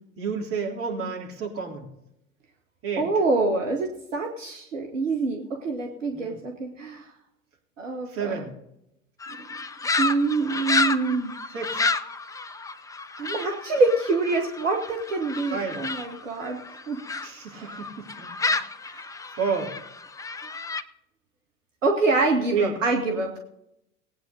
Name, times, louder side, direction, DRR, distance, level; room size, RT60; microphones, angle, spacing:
voice 1, 0.2-1.9 2.8-3.1 6.1-6.4 8.1-8.5 11.5-11.9 15.5-15.8 17.2-18.8 19.3-19.8 22.5-22.7, right 5 dB, 35° right, -1 dB, 4.0 m, -30 dB
voice 2, 3.0-7.1 7.8-8.4 10.0-11.3 13.2-17.0 17.5-17.8 18.8-19.1 21.8-23.4, right 3 dB, 75° right, 2 dB, 1.7 m, -26 dB
sound 1, 9.2-17.3 17.7-20.8, left 3 dB, 10° left, 0.6 m, -30 dB
19.5 x 9.1 x 4.0 m, 0.79 s
figure-of-eight pair, 75°, 39 cm